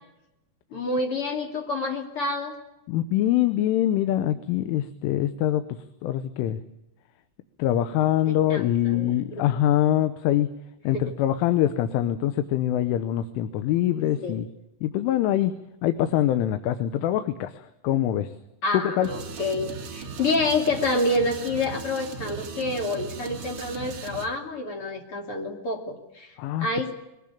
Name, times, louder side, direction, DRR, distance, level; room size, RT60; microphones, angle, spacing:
voice 1, 0.7-2.5 8.2-9.4 10.9-11.2 14.2-14.4 18.6-26.9, left 2 dB, 40° left, 2 dB, 2.4 m, -28 dB
voice 2, 2.9-6.6 7.6-10.5 10.8-14.5 14.8-15.5 15.8-18.3 18.7-19.1 26.4-26.9, left 12 dB, 80° left, 10 dB, 3.4 m, -24 dB
sound 1, 19.0-24.3, right 5 dB, 50° right, 1.9 m, -38 dB
22.5 x 18.5 x 8.5 m, 0.92 s
omnidirectional pair, 5.7 m